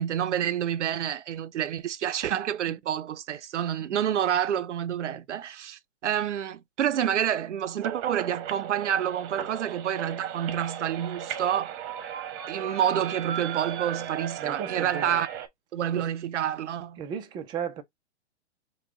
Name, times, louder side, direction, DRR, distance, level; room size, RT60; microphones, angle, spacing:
voice 1, 0.0-11.8 12.5-15.3 15.7-17.0, right 10 dB, 85° right, 0.6 m, -28 dB
sound 1, 7.8-15.5, right 9 dB, 30° right, 0.9 m, -36 dB
voice 2, 14.4-15.2 16.0-16.1 17.0-17.8, right 8 dB, 15° right, 0.4 m, -35 dB
5.8 x 2.2 x 3.6 m
hypercardioid pair, 130°, 34 cm